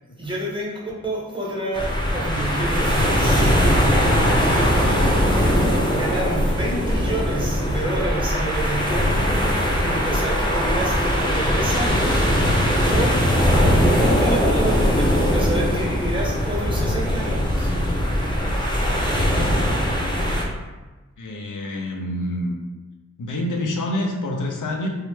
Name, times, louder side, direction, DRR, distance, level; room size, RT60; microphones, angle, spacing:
voice 1, 0.2-3.6 5.9-9.1 9.8-12.3 12.9-13.2 13.9-17.7, right 1 dB, 15° right, -5 dB, 0.8 m, -29 dB
sound 1, 1.7-20.4, equal, 15° left, 0.5 m, -20 dB
voice 2, 4.7-5.2 21.2-22.5 23.2-24.9, left 1 dB, 90° left, 1 dB, 0.5 m, -27 dB
3.1 x 2.1 x 3.1 m, 1.2 s
wide cardioid pair, 85°, 30 cm